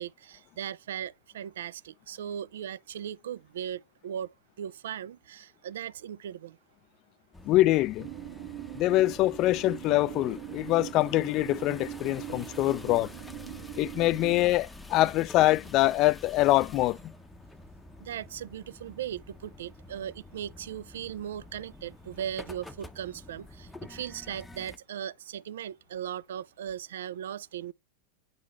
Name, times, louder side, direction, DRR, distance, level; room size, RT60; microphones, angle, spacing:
voice 1, 0.0-6.6 12.3-12.5 18.0-27.7, right 9 dB, 85° right, 0.3 m, -38 dB
sound 1, 7.3-24.8, left 2 dB, 5° left, 0.6 m, -48 dB
voice 2, 7.5-8.1 8.7-13.1 13.8-17.1, left 17 dB, 45° left, 0.3 m, -24 dB
sound 2, 8.0-14.5, right 13 dB, 60° right, 1.6 m, -41 dB
8.4 x 3.9 x 3.0 m
supercardioid pair, 125°, 0 cm